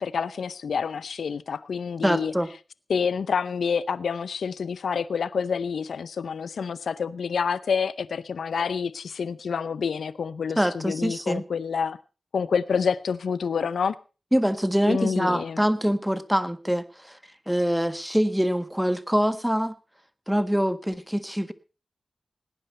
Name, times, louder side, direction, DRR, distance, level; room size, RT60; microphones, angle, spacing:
voice 1, 0.0-2.3 2.9-12.0 12.3-14.0 14.9-15.6, left 6 dB, 90° left, 0.6 m, -28 dB
voice 2, 2.0-2.5 10.6-11.4 14.3-17.2 17.5-19.7 20.3-21.5, equal, 5° right, 1.6 m, -24 dB
18.0 x 10.0 x 5.5 m
cardioid pair, 45°, 0 cm